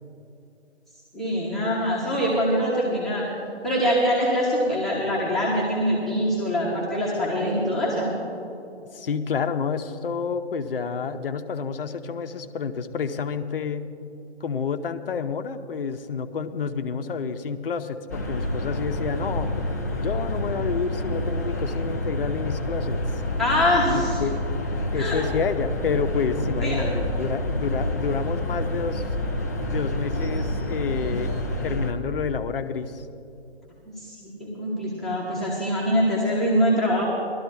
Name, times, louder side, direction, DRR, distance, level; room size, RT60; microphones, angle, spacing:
voice 1, 1.1-3.2 3.6-8.1 23.4-24.2 24.9-25.2 26.6-26.9 34.0-37.0, equal, ahead, -8 dB, 1.3 m, -24 dB
voice 2, 8.9-13.9 14.4-19.5 20.0-23.0 23.9-24.4 24.9-29.0 29.7-31.3 31.6-33.1, left 6 dB, 55° left, 9 dB, 0.8 m, -29 dB
sound 1, 18.1-31.9, left 1 dB, 15° left, 0.4 m, -28 dB
19.5 x 12.5 x 2.7 m, 2.7 s
figure-of-eight pair, 145°, 33 cm